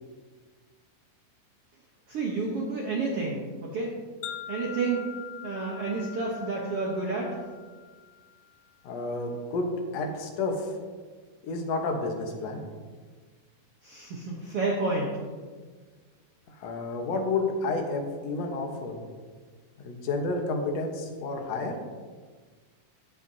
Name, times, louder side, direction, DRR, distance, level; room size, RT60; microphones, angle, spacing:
voice 1, 2.1-4.0 4.5-5.1 5.4-7.4 13.8-15.2 20.5-20.6, right 3 dB, 65° right, -3 dB, 1.5 m, -30 dB
Wind chime, 4.2-8.5, left 9 dB, 75° left, 2.2 m, -43 dB
voice 2, 8.8-9.7 9.9-10.7 11.4-12.6 16.6-19.0 19.8-21.8, left 3 dB, 60° left, 3 dB, 2.0 m, -30 dB
15.0 x 8.0 x 2.8 m, 1.5 s
omnidirectional pair, 4.0 m